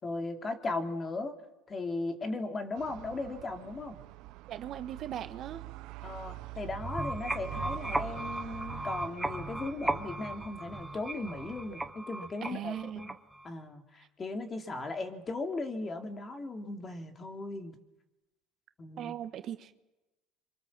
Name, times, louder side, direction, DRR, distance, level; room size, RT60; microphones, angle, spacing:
voice 1, 0.0-1.4 1.7-4.0 6.0-13.1 13.4-17.7 18.8-19.1, left 3 dB, 30° left, 6 dB, 2.9 m, -37 dB
sound 1, 2.8-11.9, right 19 dB, 70° right, 0.8 m, -45 dB
voice 2, 4.5-5.6 12.4-13.1 19.0-19.8, right 10 dB, 50° right, 10 dB, 1.3 m, -39 dB
sound 2, 6.7-13.5, right 1 dB, 5° right, 1.2 m, -36 dB
25.5 x 24.0 x 7.4 m, 1.0 s
supercardioid pair, 105°, 0 cm